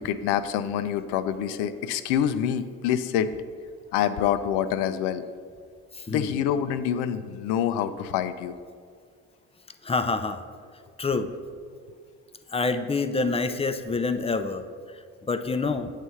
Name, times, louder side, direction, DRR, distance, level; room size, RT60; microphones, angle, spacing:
voice 1, 0.0-3.3 3.9-5.2 6.1-8.6 14.4-14.5, left 9 dB, 70° left, 12 dB, 0.5 m, -26 dB
voice 2, 5.9-6.3 9.8-10.4 11.0-11.3 12.5-14.6 14.9-15.9, left 3 dB, 15° left, 9 dB, 0.4 m, -27 dB
8.0 x 3.2 x 5.5 m, 2.1 s
hypercardioid pair, 45°, 41 cm